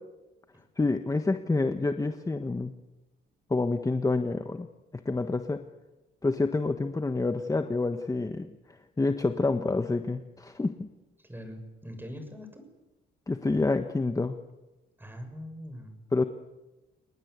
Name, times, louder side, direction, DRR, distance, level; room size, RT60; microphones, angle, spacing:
voice 1, 0.8-2.7 3.5-4.7 4.9-5.6 6.2-10.9 13.3-14.4 16.1-16.2, left 3 dB, 15° left, 8 dB, 1.3 m, -28 dB
voice 2, 11.2-12.6 15.0-16.0, equal, 10° right, 7 dB, 6.9 m, -42 dB
30.0 x 20.0 x 8.3 m, 1.1 s
cardioid pair, 90°, 20 cm